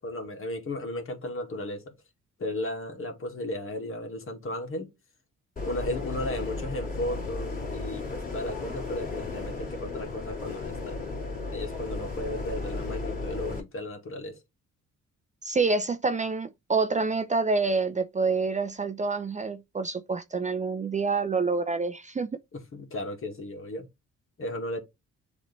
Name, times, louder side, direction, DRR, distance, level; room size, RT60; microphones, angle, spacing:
voice 1, 0.0-1.9 2.4-4.9 5.6-11.1 11.5-14.4 22.5-23.9 24.4-24.8, left 1 dB, 45° left, 2.1 m, -35 dB
sound 1, 5.6-13.6, left 3 dB, 30° left, 2.5 m, -34 dB
voice 2, 15.4-22.3, right 4 dB, 25° right, 0.5 m, -27 dB
7.3 x 3.3 x 4.2 m
cardioid pair, 90°, 30 cm